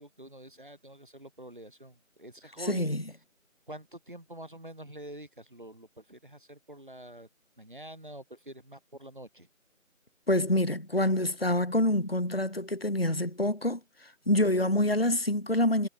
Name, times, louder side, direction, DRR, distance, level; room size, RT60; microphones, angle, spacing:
voice 1, 0.0-2.9 3.7-7.3 7.6-9.5, right 1 dB, 35° right, 6.8 m, -46 dB
voice 2, 2.6-3.0 10.3-15.9, left 1 dB, 45° left, 1.3 m, -26 dB
figure-of-eight pair, 180°, 41 cm